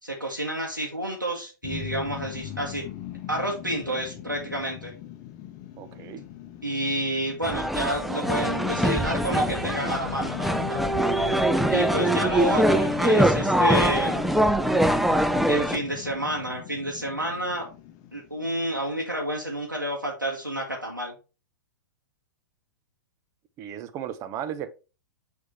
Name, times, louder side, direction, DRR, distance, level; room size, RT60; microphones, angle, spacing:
voice 1, 0.0-2.8 3.3-4.9 6.6-10.8 11.7-14.3 15.5-17.7 18.1-21.1, right 1 dB, 90° right, 1.4 m, -29 dB
sound 1, 1.6-18.8, left 11 dB, 35° left, 0.8 m, -38 dB
voice 2, 5.8-6.2 23.6-24.7, right 10 dB, 30° right, 0.7 m, -35 dB
sound 2, 7.4-15.8, right 1 dB, ahead, 0.4 m, -23 dB
6.3 x 3.5 x 4.4 m
figure-of-eight pair, 100°, 10 cm